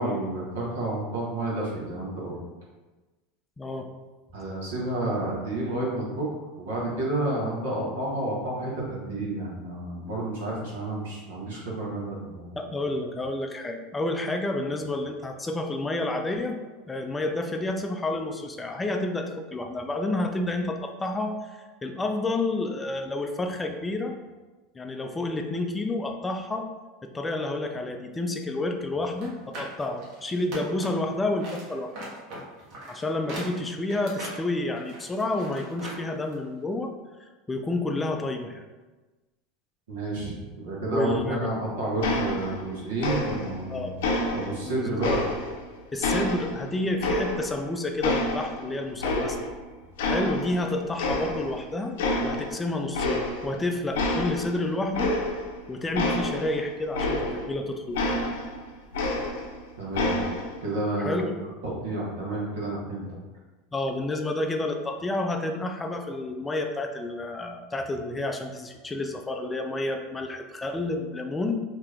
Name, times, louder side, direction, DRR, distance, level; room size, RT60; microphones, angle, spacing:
voice 1, 0.0-2.4 4.3-6.3 6.6-12.6 39.9-44.0 44.3-45.2 59.8-60.2 60.6-61.2 61.6-63.0, right 2 dB, 90° right, -4 dB, 1.1 m, -30 dB
voice 2, 12.6-16.6 16.9-24.1 24.7-26.7 27.0-32.1 32.9-36.9 37.2-38.6 40.9-41.5 43.7-44.0 44.7-45.1 45.9-49.4 50.0-51.9 52.2-55.1 55.7-58.2 61.0-61.3 63.7-71.6, left 2 dB, 15° left, 4 dB, 0.3 m, -30 dB
sound 1, 29.1-31.1 31.4-36.0 36.3-36.4, right 1 dB, 55° right, 1.0 m, -40 dB
sound 2, 42.0-42.7 43.0-43.6 44.0-45.6 46.0-47.7 48.0-49.6 50.0-50.7 51.0-51.6 52.0-52.5 52.9-53.6 53.9-57.6 57.9-59.6 59.9-60.6, left 2 dB, 80° left, 0.5 m, -28 dB
2.8 x 2.4 x 3.3 m, 1.2 s
supercardioid pair, 125°, 0 cm